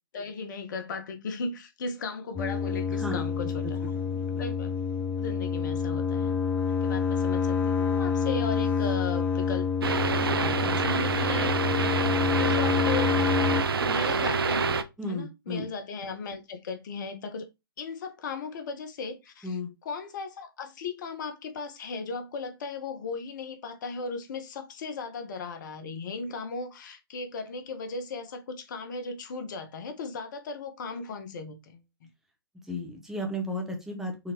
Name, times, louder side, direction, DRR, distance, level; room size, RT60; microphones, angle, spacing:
voice 1, 0.1-3.9 4.4-4.7 5.2-6.4 6.8-9.7 10.0-12.0 12.3-13.1 13.8-17.5 17.8-19.6 19.8-32.1, left 4 dB, 55° left, 0.9 m, -37 dB
sound 1, 2.4-13.6, left 6 dB, 15° left, 0.5 m, -27 dB
voice 2, 3.9-4.4 15.0-15.7 19.4-19.7 32.7-34.3, left 1 dB, 5° right, 0.9 m, -34 dB
sound 2, 9.8-14.8, right 5 dB, 75° right, 0.5 m, -27 dB
3.9 x 2.9 x 2.9 m
figure-of-eight pair, 120°, 13 cm